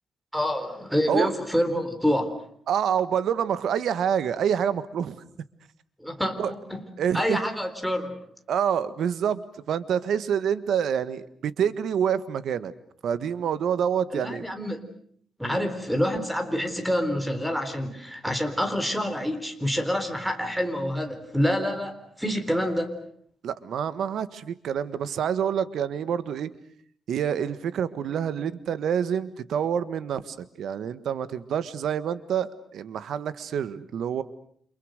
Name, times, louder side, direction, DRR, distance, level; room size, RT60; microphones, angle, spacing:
voice 1, 0.3-2.3 6.0-6.8 7.1-8.2 14.1-14.8 15.4-22.9, equal, ahead, 8 dB, 3.8 m, -27 dB
voice 2, 2.7-5.2 6.4-6.5 7.0-7.4 8.5-12.7 13.0-14.4 15.5-15.7 23.4-26.5 27.1-34.2, right 8 dB, 75° right, 14 dB, 1.5 m, -27 dB
29.5 x 27.5 x 6.6 m, 0.63 s
cardioid pair, 125°, 0 cm